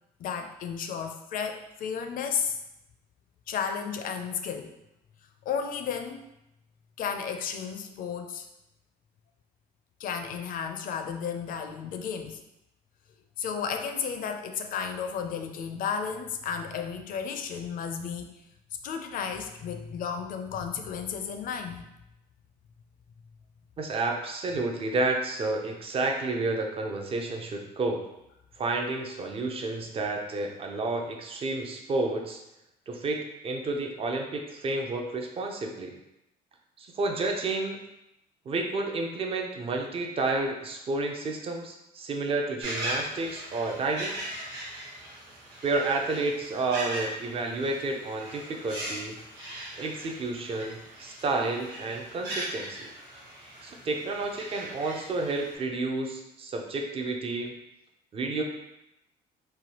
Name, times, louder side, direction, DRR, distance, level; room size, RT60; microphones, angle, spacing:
voice 1, 0.2-2.6 3.5-4.7 5.5-6.3 7.0-8.5 10.0-12.4 13.4-18.3 18.8-21.9, left 7 dB, 55° left, 6 dB, 0.4 m, -33 dB
voice 2, 23.8-28.1 28.6-32.4 32.9-36.0 36.8-37.8 38.5-44.2 45.6-49.2 49.8-52.9 53.6-57.5 58.1-58.4, right 3 dB, 35° right, 2 dB, 0.5 m, -30 dB
sound 1, 42.6-55.6, right 1 dB, 85° right, 1.2 m, -39 dB
3.1 x 2.3 x 2.9 m, 0.87 s
cardioid pair, 110°, 17 cm